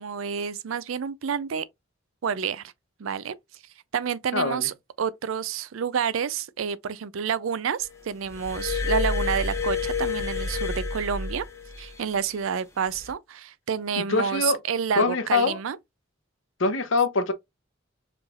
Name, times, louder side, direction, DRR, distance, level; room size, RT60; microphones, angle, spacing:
voice 1, 0.0-1.6 2.2-2.7 3.0-3.4 3.9-11.4 11.8-15.8, right 7 dB, 85° right, 0.4 m, -29 dB
voice 2, 4.3-4.7 14.0-14.6 15.0-15.6 16.6-17.3, left 3 dB, 75° left, 0.8 m, -23 dB
Glass, 8.3-11.9 12.9-13.1, left 4 dB, 15° left, 0.7 m, -29 dB
5.0 x 3.2 x 2.4 m
head